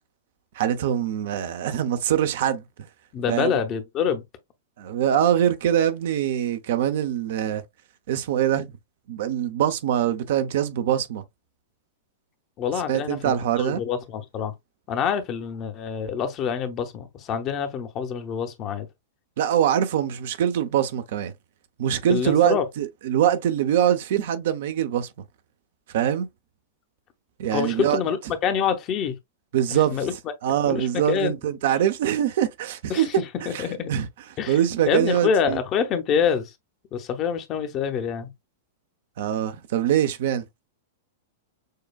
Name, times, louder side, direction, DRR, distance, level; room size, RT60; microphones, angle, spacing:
voice 1, 0.6-2.6 3.3-3.5 4.8-7.6 8.1-8.7 9.1-11.2 12.9-13.8 19.4-21.3 21.8-25.1 25.9-26.3 27.4-28.0 29.5-30.0 30.4-34.1 34.5-35.6 39.2-40.5, right 10 dB, 60° right, 0.6 m, -23 dB
voice 2, 3.1-4.2 12.6-14.5 14.9-18.9 22.1-22.6 27.5-29.2 29.9-30.1 30.6-31.4 32.9-33.9 34.4-34.6 34.9-36.5 36.9-38.3, left 7 dB, 35° left, 0.8 m, -26 dB
6.5 x 2.3 x 2.3 m
hypercardioid pair, 100°, 0 cm